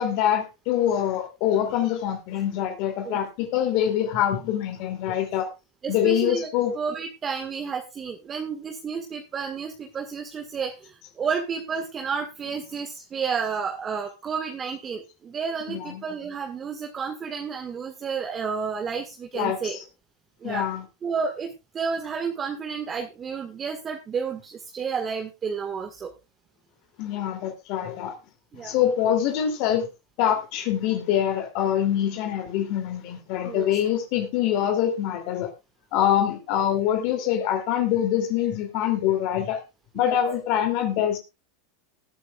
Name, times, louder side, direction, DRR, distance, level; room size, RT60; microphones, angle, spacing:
voice 1, 0.0-5.5 5.9-6.7 15.7-16.0 19.3-19.8 20.4-20.8 27.0-28.1 28.5-29.9 30.2-35.5 35.9-39.6 39.9-41.2, left 10 dB, 60° left, 5 dB, 2.9 m, -24 dB
voice 2, 5.8-6.5 6.8-19.8 20.4-20.7 21.0-26.1 28.5-28.7 33.4-33.7 40.0-40.2, right 6 dB, 30° right, 5 dB, 1.8 m, -31 dB
19.5 x 9.1 x 2.4 m, 0.26 s
hypercardioid pair, 100°, 0 cm